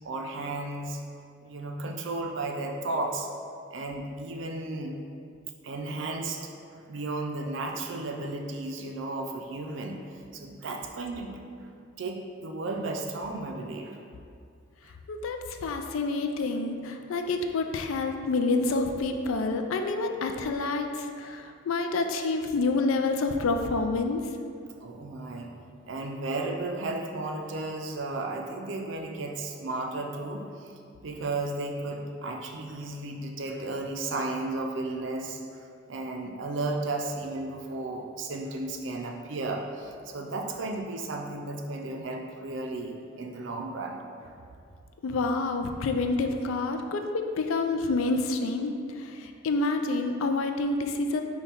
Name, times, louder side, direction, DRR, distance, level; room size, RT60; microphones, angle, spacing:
voice 1, 0.0-1.0 1.4-3.3 3.7-5.0 5.6-6.4 6.7-11.7 12.0-14.0 24.8-25.5 25.9-30.7 31.0-44.3, right 2 dB, 60° right, 3 dB, 0.4 m, -34 dB
voice 2, 15.1-24.3 45.0-51.2, left 3 dB, 75° left, 5 dB, 0.4 m, -28 dB
5.3 x 2.3 x 4.3 m, 2.4 s
head